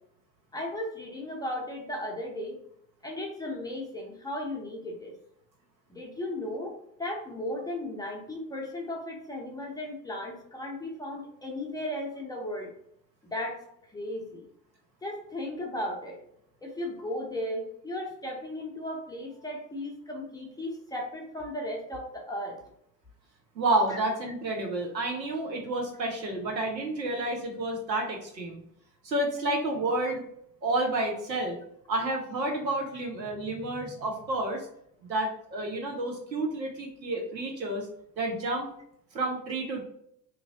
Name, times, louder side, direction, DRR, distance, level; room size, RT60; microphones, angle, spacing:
voice 1, 0.5-2.6 3.0-5.1 5.9-12.7 13.2-13.6 13.9-14.4 15.0-16.2 16.6-22.6 23.9-24.0, left 1 dB, 10° left, -1 dB, 0.5 m, -36 dB
voice 2, 23.5-28.6 29.0-30.2 30.6-31.6 31.9-34.7 35.0-37.9 38.2-38.7 39.1-39.8, right 2 dB, 85° right, 2 dB, 0.9 m, -30 dB
3.1 x 2.6 x 3.5 m, 0.72 s
figure-of-eight pair, 70°, 50 cm